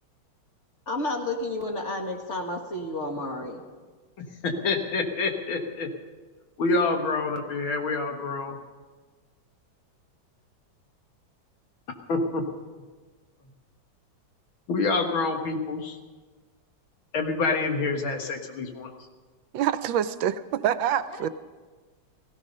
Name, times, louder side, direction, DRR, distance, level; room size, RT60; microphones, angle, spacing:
voice 1, 0.9-3.6 21.2-21.3, left 2 dB, 35° left, 2 dB, 1.8 m, -31 dB
voice 2, 4.2-5.9 6.6-8.6 12.1-12.4 14.7-16.0 17.1-18.9, left 3 dB, 85° left, 4 dB, 2.4 m, -27 dB
voice 3, 19.5-21.3, right 10 dB, 80° right, 14 dB, 1.4 m, -26 dB
16.5 x 16.0 x 5.4 m, 1.4 s
omnidirectional pair, 2.2 m